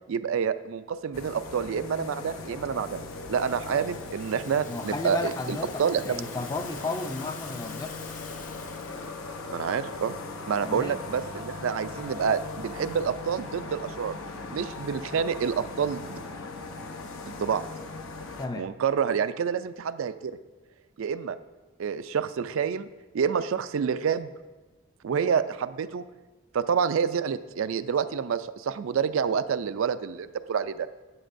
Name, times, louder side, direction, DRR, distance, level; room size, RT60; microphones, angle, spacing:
voice 1, 0.1-3.0 3.3-6.2 9.5-10.1 10.5-14.2 14.5-16.2 17.3-17.7 18.5-20.4 21.0-21.4 21.8-22.9 23.1-24.3 25.0-26.0 26.5-30.9, right 7 dB, 75° right, 12 dB, 0.4 m, -28 dB
sound 1, 1.1-18.5, left 3 dB, 75° left, 0.9 m, -39 dB
Rattle (instrument), 2.3-9.2, left 6 dB, 35° left, 0.8 m, -48 dB
voice 2, 4.7-8.0 10.6-11.0 18.4-18.7, left 3 dB, 20° left, 8 dB, 0.4 m, -33 dB
12.5 x 8.8 x 2.6 m, 1.2 s
head